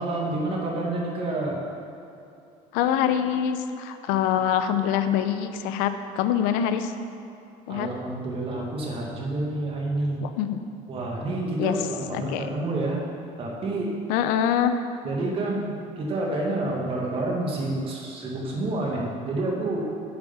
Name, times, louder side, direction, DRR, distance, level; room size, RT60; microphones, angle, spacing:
voice 1, 0.0-1.6 7.7-10.2 10.9-13.0 13.4-13.9 15.0-19.9, right 2 dB, 40° right, -2 dB, 1.9 m, -28 dB
voice 2, 2.7-6.9 7.7-7.9 10.2-10.6 11.6-11.8 12.1-12.5 14.1-14.8, left 9 dB, 80° left, 9 dB, 0.7 m, -24 dB
8.6 x 7.1 x 5.7 m, 2.7 s
cardioid pair, 145°, 15 cm